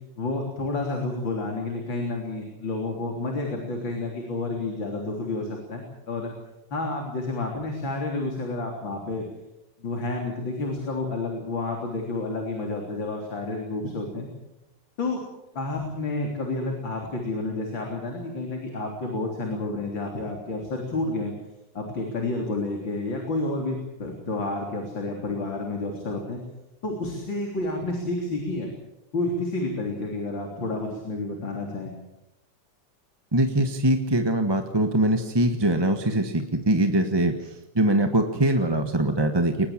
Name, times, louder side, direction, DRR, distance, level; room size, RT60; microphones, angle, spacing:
voice 1, 0.2-6.3 6.7-9.2 9.8-14.3 15.0-15.2 15.5-21.3 21.7-26.4 26.8-28.7 29.1-31.9, left 2 dB, 90° left, 1 dB, 4.3 m, -30 dB
voice 2, 33.3-37.5 37.7-39.7, right 1 dB, 15° right, 5 dB, 1.3 m, -22 dB
23.0 x 20.5 x 7.5 m, 0.92 s
omnidirectional pair, 2.0 m